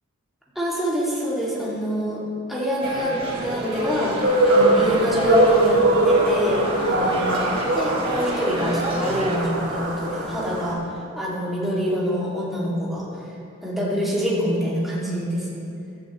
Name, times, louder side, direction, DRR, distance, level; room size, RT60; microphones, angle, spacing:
voice 1, 0.6-2.2 2.5-7.3 7.7-10.8 11.2-13.1 13.6-15.6, equal, ahead, -7 dB, 2.4 m, -26 dB
sound 1, 2.8-9.4, right 1 dB, 25° right, 1.7 m, -30 dB
sound 2, 4.2-10.7, right 1 dB, 60° right, 2.1 m, -21 dB
15.0 x 11.5 x 3.2 m, 2.5 s
head